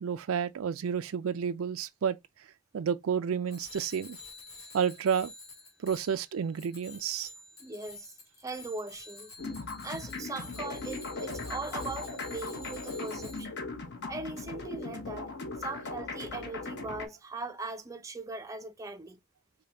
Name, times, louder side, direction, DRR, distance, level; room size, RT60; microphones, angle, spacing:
voice 1, 0.0-2.2 2.7-4.2 4.7-5.3 5.8-7.3, right 7 dB, 75° right, 0.4 m, -30 dB
Bicycle bell, 3.5-13.4, left 2 dB, 70° left, 1.6 m, -49 dB
voice 2, 7.6-9.3 9.8-13.7 14.1-15.3 15.6-19.2, right 3 dB, 15° right, 0.5 m, -40 dB
sound 1, 9.4-17.1, left 3 dB, 50° left, 1.0 m, -38 dB
5.0 x 2.2 x 2.7 m
head